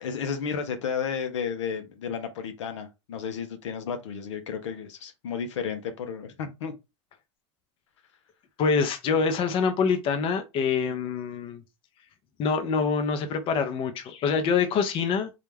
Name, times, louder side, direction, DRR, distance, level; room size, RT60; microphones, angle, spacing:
voice 1, 0.0-6.7, left 6 dB, 80° left, 0.6 m, -32 dB
voice 2, 8.6-11.6 12.4-15.3, left 5 dB, 35° left, 0.6 m, -25 dB
2.3 x 2.1 x 3.2 m
hypercardioid pair, 110°, 15 cm